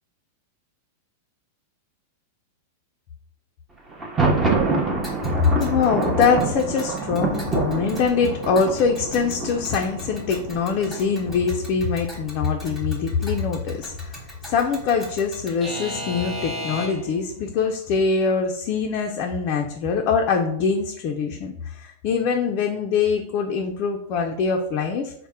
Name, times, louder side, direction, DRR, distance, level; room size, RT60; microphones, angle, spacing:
Thunder, 3.9-11.7, right 3 dB, 15° right, 0.6 m, -26 dB
Alarm / Clock, 5.0-17.2, left 1 dB, ahead, 1.0 m, -38 dB
voice 1, 5.3-25.1, left 5 dB, 40° left, 2 dB, 0.3 m, -23 dB
4.0 x 2.0 x 3.5 m, 0.72 s
supercardioid pair, 145°, 0 cm